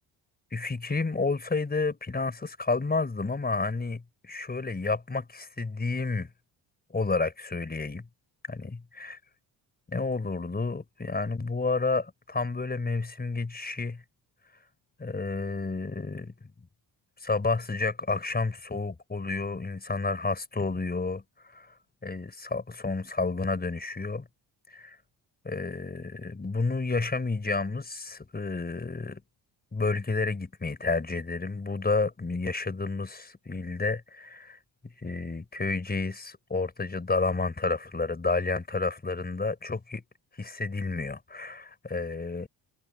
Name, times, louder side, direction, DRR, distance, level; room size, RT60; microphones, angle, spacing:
voice 1, 0.5-6.3 6.9-8.1 8.5-9.2 9.9-14.0 15.0-16.3 17.2-21.2 21.5-21.7 22.0-24.3 24.7-25.0 25.4-29.2 29.7-34.6 34.8-40.0 40.4-42.5, left 3 dB, 20° left, 5.2 m, -30 dB
cardioid pair, 100°, 43 cm